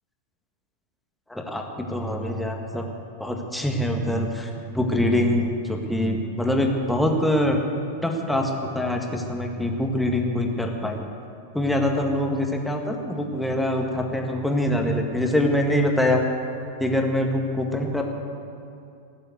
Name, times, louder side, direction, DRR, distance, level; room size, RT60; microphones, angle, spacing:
voice 1, 1.3-2.9 3.2-4.5 4.7-7.6 8.0-11.1 11.5-16.2 16.8-18.0, left 1 dB, 5° left, 2 dB, 1.8 m, -24 dB
17.5 x 7.6 x 7.9 m, 2.6 s
figure-of-eight pair, 90°, 0 cm